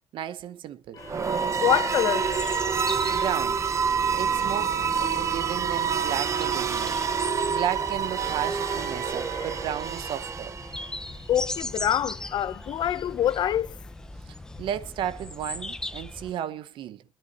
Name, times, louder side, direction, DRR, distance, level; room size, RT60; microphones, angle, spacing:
voice 1, 0.1-1.0 3.1-3.6 4.1-7.0 7.5-10.6 14.6-17.0, right 10 dB, 65° right, 0.9 m, -33 dB
voice 2, 0.9-2.5 10.9-11.0 11.3-13.8, left 10 dB, 55° left, 0.7 m, -26 dB
sound 1, 0.9-2.7 5.1-9.7 12.1-13.4, left 3 dB, 35° left, 1.7 m, -45 dB
sound 2, 1.0-11.0, right 6 dB, 35° right, 0.8 m, -27 dB
sound 3, 2.2-16.3, left 1 dB, 5° left, 0.6 m, -39 dB
22.5 x 10.5 x 2.9 m
cardioid pair, 120°, 9 cm